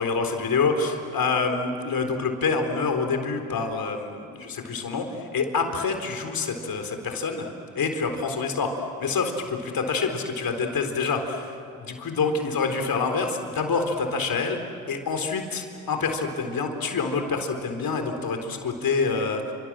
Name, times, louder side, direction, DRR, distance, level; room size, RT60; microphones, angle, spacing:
voice 1, 0.0-7.5 7.8-8.7 9.0-14.6 14.9-19.5, left 4 dB, 55° left, 5 dB, 4.0 m, -27 dB
29.5 x 26.0 x 7.6 m, 2.5 s
hypercardioid pair, 50°, 43 cm